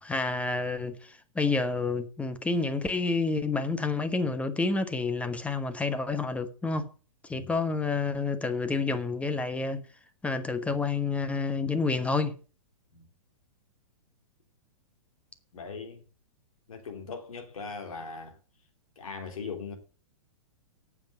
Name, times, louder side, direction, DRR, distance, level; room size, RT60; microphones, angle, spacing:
voice 1, 0.0-1.0 1.3-6.9 7.3-9.8 10.2-12.4, left 3 dB, 5° left, 1.1 m, -29 dB
voice 2, 15.5-16.0 16.7-18.4 19.0-19.7, left 5 dB, 85° left, 3.2 m, -39 dB
9.1 x 7.4 x 7.9 m
hypercardioid pair, 135°, 18 cm